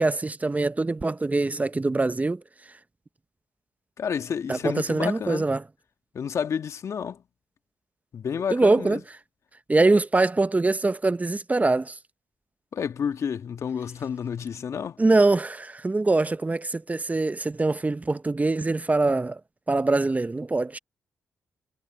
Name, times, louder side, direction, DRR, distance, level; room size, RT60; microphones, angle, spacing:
voice 1, 0.0-2.4 4.5-5.6 8.5-9.0 9.7-11.9 15.0-19.4 19.7-20.8, right 2 dB, 25° right, 1.1 m, -23 dB
voice 2, 4.0-5.5 6.1-7.2 8.1-9.0 12.7-15.0, left 7 dB, 60° left, 1.8 m, -30 dB
hypercardioid pair, 40°, 6 cm